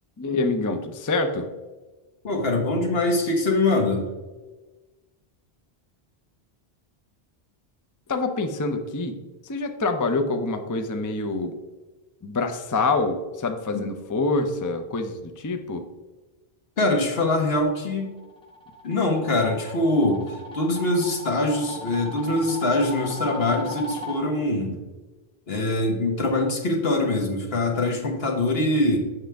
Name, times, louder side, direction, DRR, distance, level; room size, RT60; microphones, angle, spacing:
voice 1, 0.2-1.5 8.1-9.2 9.4-11.5 12.2-15.8, left 3 dB, 25° left, 6 dB, 0.4 m, -26 dB
voice 2, 2.2-4.0 13.7-13.9 16.8-18.1 18.8-24.7 25.5-29.0, left 2 dB, 70° left, 1 dB, 1.6 m, -23 dB
sound 1, 18.0-24.2, left 1 dB, 5° left, 0.8 m, -37 dB
7.5 x 6.2 x 3.4 m, 1.2 s
omnidirectional pair, 1.1 m